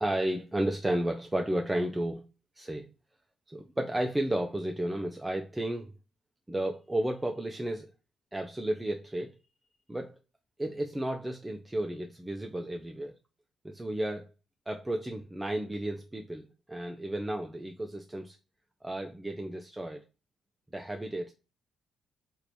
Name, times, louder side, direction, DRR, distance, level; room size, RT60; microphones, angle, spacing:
voice 1, 0.0-2.3 2.6-2.9 3.5-5.9 6.5-7.9 8.3-9.3 9.9-10.2 10.6-13.2 13.6-14.3 14.7-18.4 18.8-20.0 20.7-21.3, right 1 dB, 15° right, 0.5 m, -33 dB
3.0 x 2.5 x 3.3 m
supercardioid pair, 50°, 0 cm